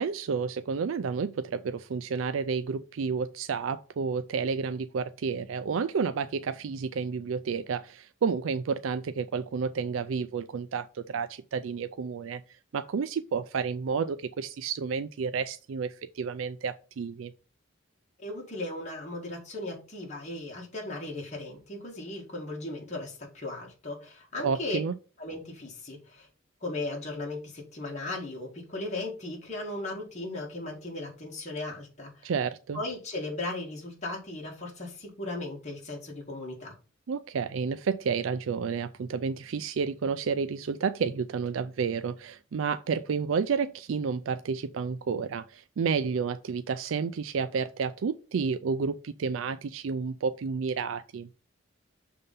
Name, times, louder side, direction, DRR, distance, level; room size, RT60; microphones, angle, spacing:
voice 1, 0.0-17.3 24.4-24.9 32.2-32.8 37.1-51.3, right 5 dB, 85° right, 0.4 m, -31 dB
voice 2, 18.2-24.8 25.2-26.3 26.6-32.3 32.7-36.7, left 2 dB, 35° left, 1.9 m, -37 dB
6.6 x 3.8 x 5.5 m
head